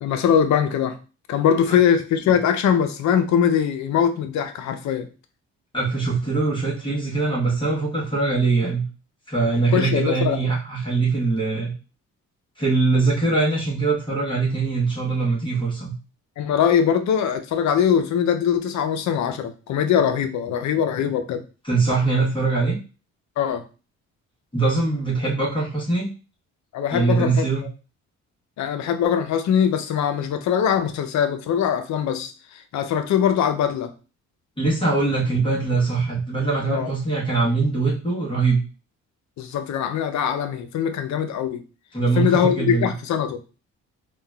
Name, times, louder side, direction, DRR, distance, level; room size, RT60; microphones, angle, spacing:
voice 1, 0.0-1.0 1.3-5.1 9.7-10.4 16.4-21.4 23.4-23.6 26.7-27.5 28.6-33.9 36.7-36.9 39.4-41.6 42.2-43.4, left 8 dB, 65° left, 8 dB, 0.5 m, -22 dB
voice 2, 5.7-8.8 9.3-11.7 12.6-15.9 21.7-22.8 24.5-26.1 26.9-27.7 34.6-38.6 41.9-42.9, right 3 dB, 15° left, -6 dB, 1.1 m, -22 dB
3.7 x 2.3 x 2.2 m, 0.34 s
cardioid pair, 90°, 30 cm